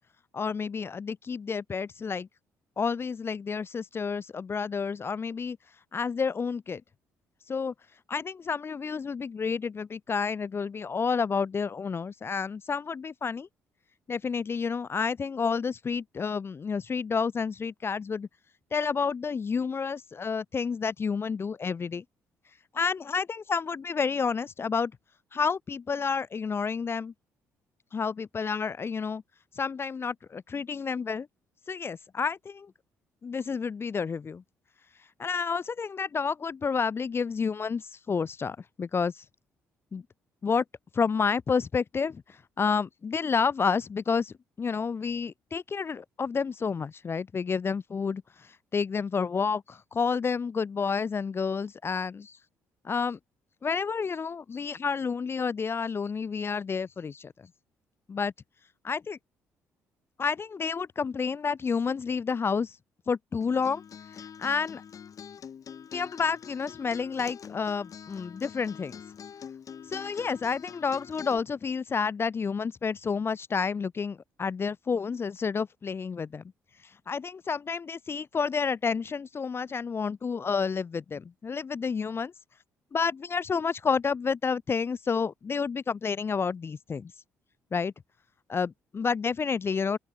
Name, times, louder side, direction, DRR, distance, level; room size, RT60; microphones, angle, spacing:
voice 1, 0.3-2.3 2.8-5.6 5.9-6.8 7.5-7.7 8.1-13.5 14.1-18.3 18.7-22.0 22.7-24.9 25.3-27.1 27.9-29.2 29.6-31.3 31.7-32.7 33.2-34.4 35.2-39.2 39.9-40.0 40.4-40.6 40.9-52.4 52.8-53.2 53.6-57.5 58.1-58.3 58.8-59.2 60.2-62.8 63.1-63.8 64.4-64.8 65.9-68.9 69.9-76.4 77.1-82.3 82.9-87.1 87.7-87.9 88.5-90.0, left 5 dB, 30° left, 0.4 m, -30 dB
Acoustic guitar, 63.4-71.4, left 7 dB, 45° left, 6.3 m, -45 dB
open air
figure-of-eight pair, 45°, 8 cm